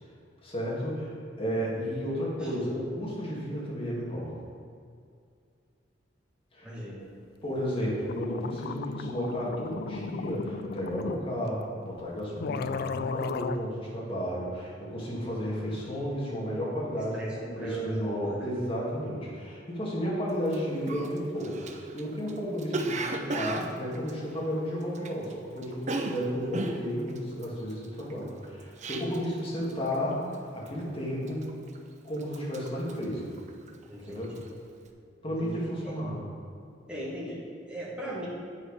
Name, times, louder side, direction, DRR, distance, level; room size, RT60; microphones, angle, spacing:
voice 1, 0.4-4.4 6.5-6.7 7.4-31.5 32.0-33.3 34.1-34.3 35.2-36.2, equal, 30° left, -5 dB, 1.9 m, -33 dB
voice 2, 6.6-7.0 17.1-18.5 33.9-34.4 35.4-35.9 36.9-38.3, right 1 dB, 5° right, -6 dB, 1.6 m, -38 dB
sound 1, 7.7-7.8 8.0-11.2 12.0-12.1 12.4-13.6, left 5 dB, 55° left, 0.3 m, -35 dB
Cough, 20.5-20.6 20.9-25.3 25.6-29.4 29.7-30.0 30.3-30.8 31.3-31.9 32.2-33.8 34.2-34.5, right 2 dB, 40° right, 0.5 m, -35 dB
9.2 x 4.6 x 4.8 m, 2.3 s
head